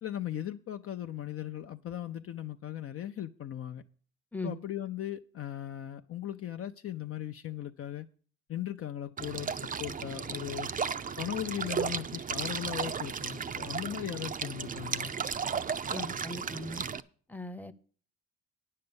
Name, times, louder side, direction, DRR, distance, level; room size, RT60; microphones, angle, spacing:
voice 1, 0.0-3.8 4.4-8.1 8.5-10.7 11.2-15.1, left 12 dB, 50° left, 6 dB, 0.5 m, -38 dB
sound 1, 9.2-17.0, right 6 dB, 30° right, 0.5 m, -35 dB
voice 2, 15.9-16.9 17.3-17.7, left 2 dB, 5° left, 10 dB, 0.7 m, -39 dB
9.6 x 6.6 x 6.9 m, 0.43 s
cardioid pair, 90°, 30 cm